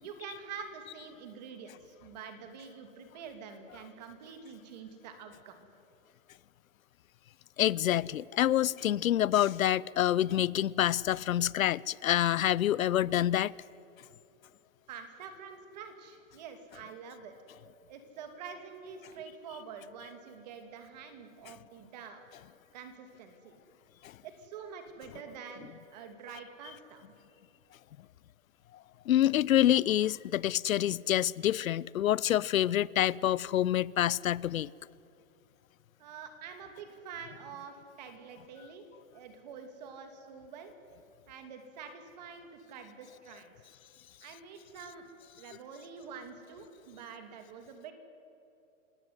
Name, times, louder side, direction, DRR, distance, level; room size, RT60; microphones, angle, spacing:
voice 1, 0.0-5.7 14.9-17.3 17.9-22.2 22.7-23.5 24.2-27.0 36.0-38.8 39.1-40.7 41.3-43.5 44.2-45.0 45.4-47.9, right 6 dB, 30° right, 2.7 m, -46 dB
voice 2, 7.6-13.5 24.0-24.1 29.1-34.7, left 12 dB, 90° left, 0.8 m, -27 dB
29.5 x 18.0 x 9.6 m
hypercardioid pair, 180°, 40 cm